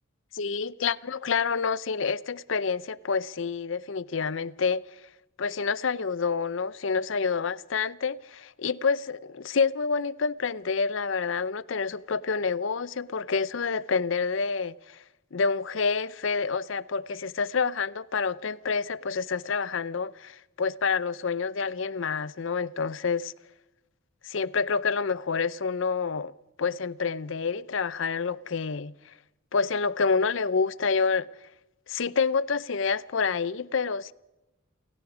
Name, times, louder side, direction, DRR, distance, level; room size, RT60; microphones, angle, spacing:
voice 1, 0.3-4.8 5.4-15.0 15.3-23.3 24.2-26.3 26.6-28.9 29.5-31.3 31.9-34.1, left 5 dB, 65° left, 0.6 m, -28 dB
29.5 x 17.5 x 5.0 m
head